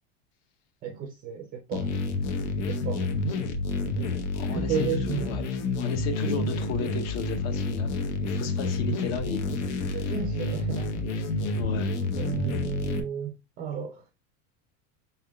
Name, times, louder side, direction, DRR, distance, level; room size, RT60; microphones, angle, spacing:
voice 1, 0.8-2.0 2.7-3.1 4.5-5.3 6.2-6.5 9.8-11.0 12.1-14.0, right 7 dB, 25° right, 0.4 m, -33 dB
sound 1, 1.7-13.0, left 2 dB, 70° left, 1.0 m, -29 dB
voice 2, 4.3-5.4 5.8-7.9 8.3-10.1 11.5-11.9, left 6 dB, 45° left, 0.9 m, -35 dB
5.5 x 3.5 x 2.3 m
supercardioid pair, 160°, 36 cm